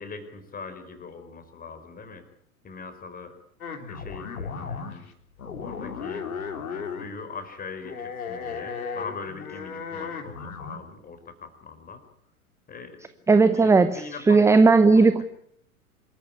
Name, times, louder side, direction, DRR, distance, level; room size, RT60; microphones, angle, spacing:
voice 1, 0.0-2.2 2.6-3.4 3.9-5.0 5.6-6.3 6.7-12.0 12.7-13.0 13.6-14.5 14.9-15.1, left 5 dB, 20° left, 9 dB, 4.7 m, -41 dB
sound 1, 3.6-5.1 5.4-7.2 7.8-10.8, left 5 dB, 70° left, 3.4 m, -35 dB
voice 2, 13.3-15.2, right 4 dB, 5° right, 13 dB, 0.8 m, -17 dB
26.5 x 14.0 x 9.6 m, 0.71 s
figure-of-eight pair, 95°, 44 cm